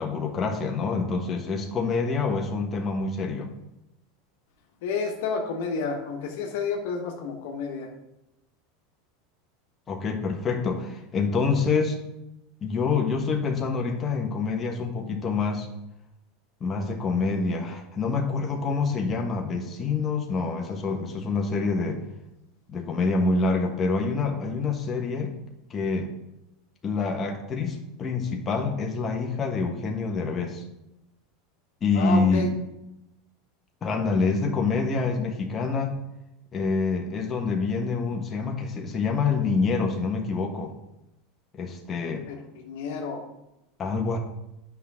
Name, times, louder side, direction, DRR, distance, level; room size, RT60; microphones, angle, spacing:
voice 1, 0.0-3.5 9.9-12.0 12.6-15.7 16.6-22.0 22.7-25.3 25.7-26.1 26.8-30.6 31.8-32.5 33.8-36.0 36.5-40.7 41.5-42.3 43.8-44.2, left 4 dB, 30° left, 1 dB, 1.4 m, -26 dB
voice 2, 4.8-7.9 31.9-32.5 42.3-43.2, left 5 dB, 70° left, 3 dB, 1.4 m, -30 dB
9.2 x 5.9 x 3.7 m, 0.90 s
supercardioid pair, 110°, 0 cm